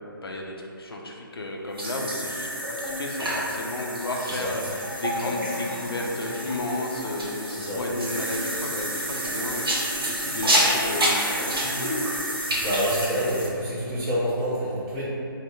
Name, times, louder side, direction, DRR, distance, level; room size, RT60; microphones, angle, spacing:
voice 1, 0.2-2.5 2.8-12.2, left 2 dB, 85° left, 0 dB, 0.4 m, -33 dB
sound 1, 1.8-13.5, equal, 75° right, 0.7 m, -28 dB
voice 2, 7.5-7.8 12.6-15.1, equal, 15° right, -10 dB, 0.7 m, -27 dB
3.5 x 2.0 x 2.5 m, 2.6 s
figure-of-eight pair, 145°, 12 cm